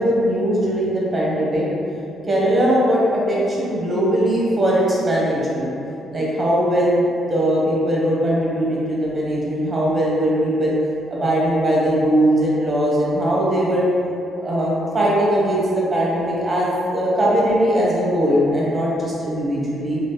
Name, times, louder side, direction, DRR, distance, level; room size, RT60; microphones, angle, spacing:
voice 1, 0.0-1.6 2.2-5.7 6.1-10.7 11.1-13.9 14.4-20.0, equal, 25° right, -6 dB, 1.0 m, -20 dB
3.0 x 2.4 x 3.3 m, 2.7 s
cardioid pair, 90°, 0 cm